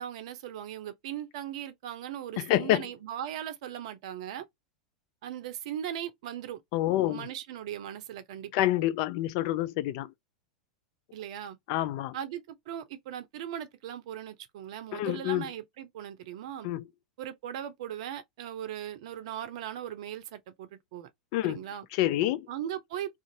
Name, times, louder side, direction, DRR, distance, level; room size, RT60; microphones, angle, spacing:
voice 1, 0.0-4.5 5.2-6.6 7.0-8.7 11.1-11.6 12.1-16.7 17.2-21.1 21.4-21.8 22.5-23.2, right 10 dB, 55° right, 0.5 m, -38 dB
voice 2, 2.4-2.9 6.7-7.3 8.5-10.1 11.7-12.2 14.9-15.5 16.6-16.8 21.3-21.6 21.9-22.5, left 14 dB, 50° left, 0.3 m, -27 dB
2.5 x 2.4 x 2.8 m
figure-of-eight pair, 90°, 4 cm